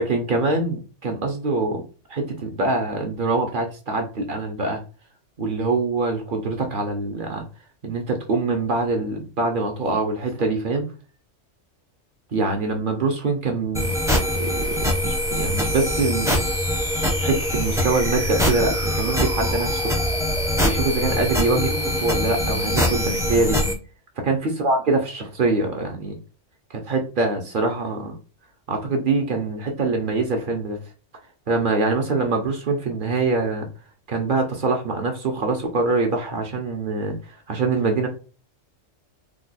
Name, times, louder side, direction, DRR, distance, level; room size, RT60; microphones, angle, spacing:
voice 1, 0.0-4.8 5.4-7.4 7.8-10.9 12.3-13.9 14.3-14.7 15.0-16.3 17.2-19.9 20.6-23.6 24.2-26.2 26.7-28.2 28.7-30.8 31.5-33.7 34.1-38.1, right 3 dB, 55° right, 3 dB, 0.7 m, -24 dB
sound 1, 13.8-23.7, left 1 dB, 5° right, 0.5 m, -23 dB
2.9 x 2.2 x 3.9 m, 0.35 s
omnidirectional pair, 1.3 m